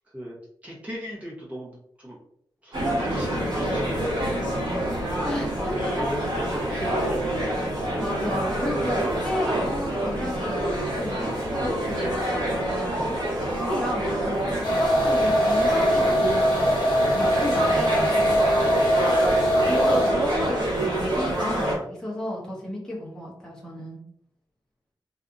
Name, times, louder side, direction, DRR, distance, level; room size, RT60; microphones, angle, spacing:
voice 1, 0.6-2.2 2.6-8.0, right 1 dB, 15° right, -5 dB, 0.9 m, -36 dB
sound 1, 2.7-21.8, right 1 dB, 65° right, 1.1 m, -27 dB
voice 2, 5.2-5.9 8.0-12.1 12.7-18.1 19.6-24.0, left 1 dB, 10° left, -5 dB, 0.9 m, -33 dB
sound 2, 14.6-20.3, equal, 85° left, 0.7 m, -22 dB
2.7 x 2.4 x 2.5 m, 0.68 s
wide cardioid pair, 150°, 8 cm